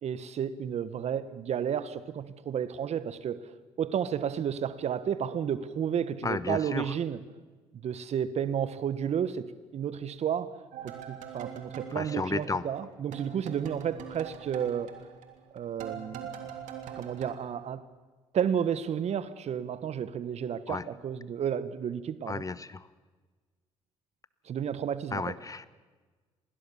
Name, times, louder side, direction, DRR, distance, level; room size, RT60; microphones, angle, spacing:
voice 1, 0.0-3.4 3.8-7.2 7.7-10.5 10.8-14.9 15.5-16.3 16.9-17.8 18.3-22.4 24.4-25.3, right 8 dB, 55° right, 14 dB, 1.4 m, -32 dB
voice 2, 6.2-6.8 11.9-12.6 20.7-20.8 22.3-22.8 25.1-25.7, left 4 dB, 25° left, 16 dB, 1.1 m, -33 dB
sound 1, 10.7-12.9 13.1-17.3, right 8 dB, 75° right, 3.0 m, -43 dB
27.5 x 20.5 x 7.1 m, 1.4 s
hypercardioid pair, 60°, 13 cm